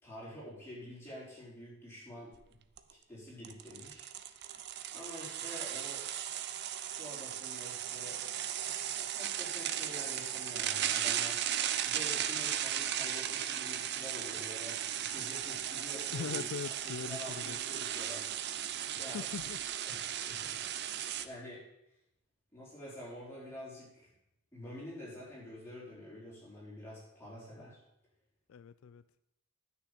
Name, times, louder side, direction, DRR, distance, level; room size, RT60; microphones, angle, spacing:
voice 1, 0.0-2.3 2.9-4.5 4.9-6.1 6.8-8.2 9.0-11.5 11.8-16.5 16.8-18.3 18.8-19.2 19.9-21.6 22.5-24.1 24.5-27.8, left 1 dB, 10° left, -7 dB, 4.4 m, -48 dB
sound 1, 2.4-2.5 2.8-2.9 3.4-21.3, right 10 dB, 50° right, 0.6 m, -36 dB
voice 2, 16.1-17.6 19.1-19.6 28.5-29.0, left 7 dB, 75° left, 15 dB, 0.3 m, -41 dB
9.9 x 6.2 x 8.1 m, 0.84 s
head